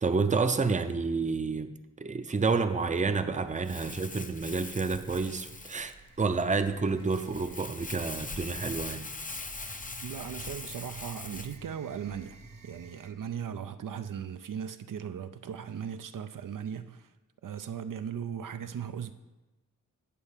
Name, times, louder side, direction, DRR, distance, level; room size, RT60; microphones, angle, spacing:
voice 1, 0.0-1.7 2.0-9.1, right 4 dB, 25° right, 0.5 m, -29 dB
sound 1, 3.4-13.1, right 4 dB, 60° right, 0.9 m, -52 dB
Crumpling crinkling, 3.6-11.6, left 3 dB, 25° left, 0.5 m, -42 dB
voice 2, 10.0-12.4 12.6-17.1 17.4-19.1, right 8 dB, 80° right, 0.5 m, -38 dB
8.5 x 4.4 x 7.1 m
wide cardioid pair, 70°, 32 cm